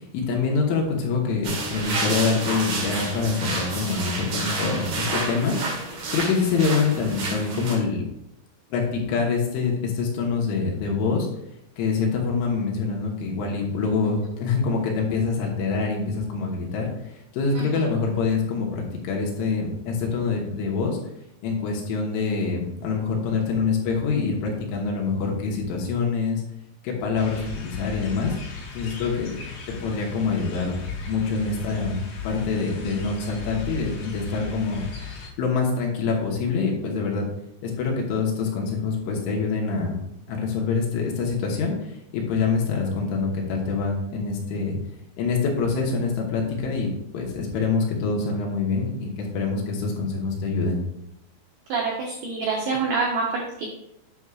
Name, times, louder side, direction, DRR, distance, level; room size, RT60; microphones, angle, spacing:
voice 1, 0.1-8.0 8.7-11.3 11.8-21.0 21.4-26.4 26.8-28.4 28.8-29.3 29.7-30.8 31.1-34.9 35.4-37.3 37.6-40.0 40.3-44.8 45.2-46.9 47.1-50.8, left 4 dB, 75° left, -1 dB, 3.5 m, -25 dB
sound 1, 1.4-7.7, right 3 dB, 60° right, 2.1 m, -29 dB
sound 2, 27.2-35.3, left 5 dB, 60° left, 3.4 m, -36 dB
voice 2, 51.7-53.7, right 4 dB, 85° right, -2 dB, 2.3 m, -26 dB
9.6 x 6.2 x 2.4 m, 0.81 s
omnidirectional pair, 6.0 m